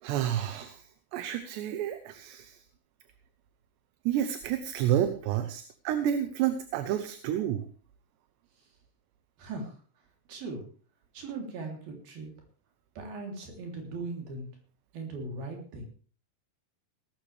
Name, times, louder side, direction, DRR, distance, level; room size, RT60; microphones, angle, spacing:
voice 1, 0.0-2.6 4.1-7.7, right 10 dB, 80° right, 10 dB, 3.0 m, -30 dB
voice 2, 9.4-9.7 10.3-10.7 11.1-12.3 13.0-14.5 14.9-15.9, right 3 dB, 55° right, 2 dB, 5.0 m, -39 dB
18.0 x 13.5 x 3.4 m, 0.41 s
omnidirectional pair, 5.1 m